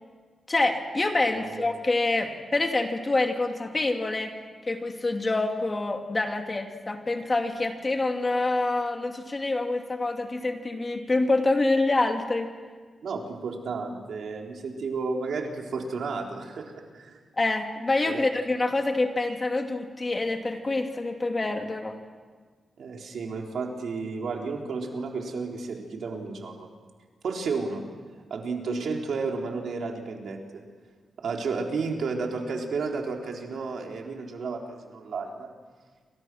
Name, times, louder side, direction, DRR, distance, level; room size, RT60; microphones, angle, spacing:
voice 1, 0.5-4.4 4.7-12.5 17.4-21.9, left 2 dB, 30° left, 4 dB, 2.8 m, -26 dB
voice 2, 13.0-17.2 18.1-18.3 22.8-26.7 27.2-27.8 28.3-30.6 31.2-35.5, right 4 dB, 75° right, 1 dB, 3.8 m, -32 dB
29.0 x 25.5 x 6.2 m, 1.5 s
wide cardioid pair, 100°, 0 cm